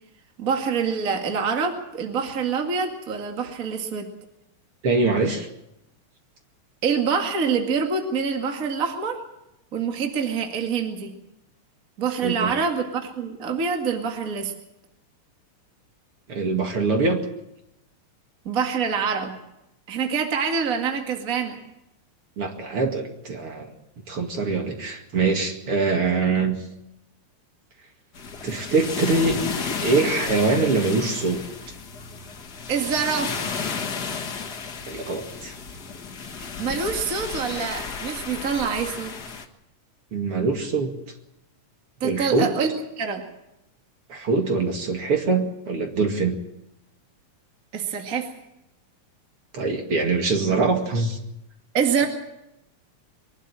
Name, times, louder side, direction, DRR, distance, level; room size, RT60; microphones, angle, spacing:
voice 1, 0.4-4.1 6.8-9.2 9.7-11.1 12.0-14.5 18.4-19.3 19.9-21.6 32.7-33.5 36.6-39.1 42.0-42.7 43.0-43.2 47.7-48.3 51.7-52.1, right 6 dB, 30° right, 3 dB, 2.2 m, -25 dB
voice 2, 4.8-5.5 12.2-12.6 16.3-17.2 22.4-23.7 24.1-26.6 28.4-31.4 34.9-35.6 40.1-40.9 42.0-42.5 44.1-46.3 49.5-51.2, right 3 dB, 50° right, 3 dB, 2.9 m, -23 dB
sound 1, 28.1-39.5, left 5 dB, 40° left, 1.7 m, -33 dB
23.0 x 12.0 x 9.9 m, 0.87 s
omnidirectional pair, 3.3 m